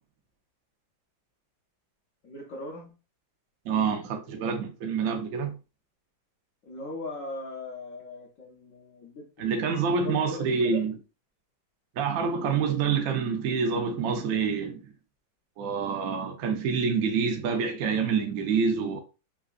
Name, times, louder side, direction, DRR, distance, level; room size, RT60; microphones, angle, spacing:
voice 1, 2.2-2.9 6.6-9.6 9.9-10.9, left 2 dB, 65° left, 0.8 m, -39 dB
voice 2, 3.6-5.5 9.4-11.0 12.0-14.8 15.6-19.0, right 5 dB, 70° right, 0.8 m, -27 dB
3.7 x 2.4 x 2.4 m
omnidirectional pair, 2.1 m